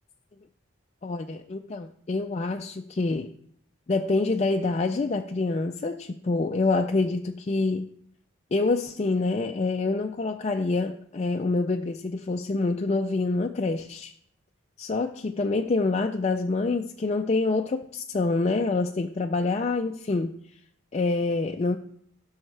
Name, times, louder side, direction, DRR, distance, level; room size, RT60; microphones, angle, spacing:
voice 1, 1.0-3.3 3.9-7.9 8.5-14.1 14.8-20.4 20.9-21.8, left 3 dB, 30° left, 4 dB, 0.3 m, -26 dB
15.5 x 6.3 x 3.3 m, 0.68 s
head